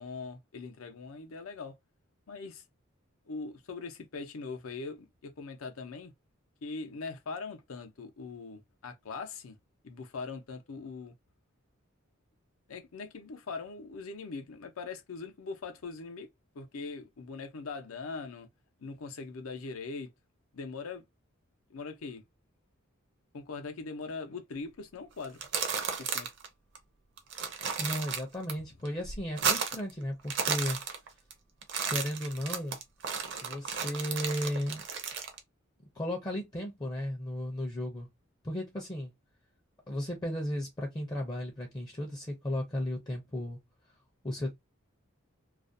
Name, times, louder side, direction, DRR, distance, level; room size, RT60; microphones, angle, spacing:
voice 1, 0.0-1.8 2.3-2.6 3.3-6.1 6.6-9.6 9.8-11.1 12.7-16.3 16.5-18.5 18.8-20.1 20.5-21.0 21.7-22.2 23.3-25.4 26.0-26.3, left 4 dB, 85° left, 0.6 m, -41 dB
sound 1, 25.2-26.5 26.8-26.9 27.2-28.5 28.9-29.9 30.2-31.3 31.6-35.4, right 6 dB, 60° right, 0.5 m, -33 dB
voice 2, 27.8-30.8 31.9-32.8 33.4-34.8 36.0-38.1 38.4-39.1 39.9-43.6 44.2-44.5, left 1 dB, 20° left, 0.4 m, -35 dB
2.4 x 2.1 x 2.6 m
head